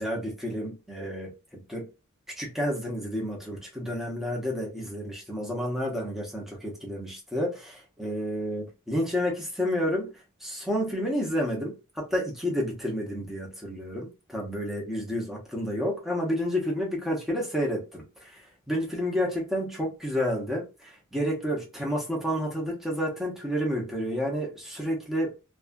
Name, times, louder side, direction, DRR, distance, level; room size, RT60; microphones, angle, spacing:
voice 1, 0.0-1.9 2.4-10.1 10.4-25.3, equal, ahead, 1.0 m, -30 dB
2.7 x 2.4 x 2.6 m
head